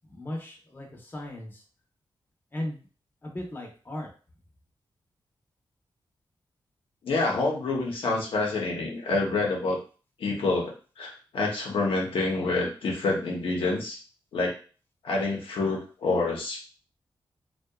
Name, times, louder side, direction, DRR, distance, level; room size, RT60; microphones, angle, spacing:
voice 1, 0.0-1.6 2.5-2.8 3.2-4.1, left 1 dB, 25° left, 0 dB, 0.7 m, -37 dB
voice 2, 7.0-9.8 10.2-14.0 14.3-14.6 15.0-16.6, left 3 dB, 90° left, -1 dB, 0.7 m, -27 dB
2.7 x 2.2 x 2.2 m, 0.37 s
cardioid pair, 85°, 9 cm